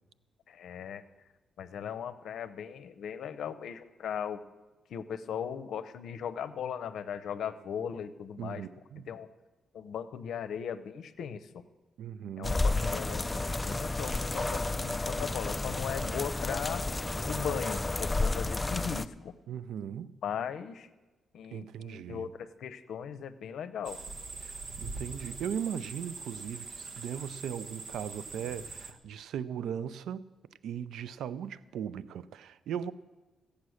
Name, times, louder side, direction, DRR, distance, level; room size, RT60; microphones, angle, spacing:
voice 1, 0.5-1.0 1.6-4.4 4.9-8.7 9.1-9.3 9.7-11.6 12.4-16.8 17.3-19.3 20.2-20.9 21.3-24.0, left 8 dB, 75° left, 0.7 m, -38 dB
voice 2, 8.4-9.1 12.0-12.6 19.5-20.2 21.5-22.3 24.4-30.3 30.6-32.9, right 8 dB, 85° right, 0.4 m, -38 dB
sound 1, 12.4-19.1, left 2 dB, 20° left, 0.4 m, -31 dB
sound 2, 23.8-28.9, right 3 dB, 55° right, 1.1 m, -43 dB
15.5 x 8.5 x 6.4 m
cardioid pair, 100°, 0 cm